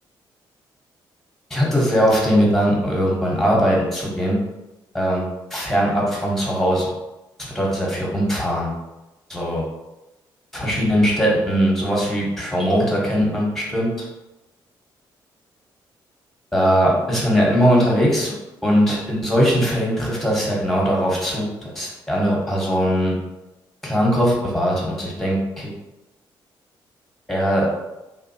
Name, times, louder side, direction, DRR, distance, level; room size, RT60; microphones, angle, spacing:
voice 1, 1.5-4.4 4.9-6.9 7.4-8.7 9.3-9.6 10.5-14.1 16.5-18.3 18.6-23.2 23.8-25.7 27.3-27.7, equal, 5° left, -3 dB, 1.2 m, -20 dB
2.7 x 2.2 x 2.8 m, 1.0 s
hypercardioid pair, 45°, 11 cm